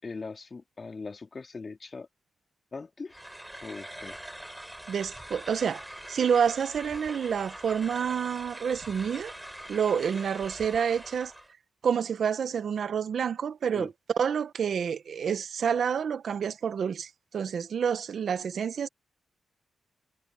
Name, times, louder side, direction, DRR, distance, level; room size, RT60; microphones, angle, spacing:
voice 1, 0.0-2.1 2.7-3.2 3.6-4.2 13.7-13.9, left 4 dB, 40° left, 3.8 m, -40 dB
sound 1, 3.1-11.5, right 1 dB, 10° right, 6.6 m, -43 dB
voice 2, 4.9-9.3 9.7-11.3 11.8-18.9, right 7 dB, 70° right, 1.1 m, -28 dB
cardioid pair, 65°, 0 cm